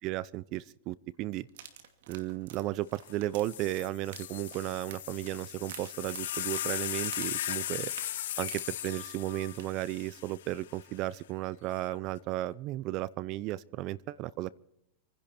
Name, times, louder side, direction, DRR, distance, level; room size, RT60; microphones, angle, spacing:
voice 1, 0.0-1.5 2.1-7.9 8.4-14.5, right 16 dB, 45° right, 22 dB, 0.6 m, -34 dB
sound 1, 1.5-9.3 9.6-9.8 10.2-10.3, right 9 dB, 70° right, 2.4 m, -49 dB
sound 2, 3.1-3.2 3.4-10.8 11.7-12.2, left 13 dB, 75° left, 0.6 m, -38 dB
27.5 x 10.5 x 4.3 m, 0.80 s
hypercardioid pair, 115°, 0 cm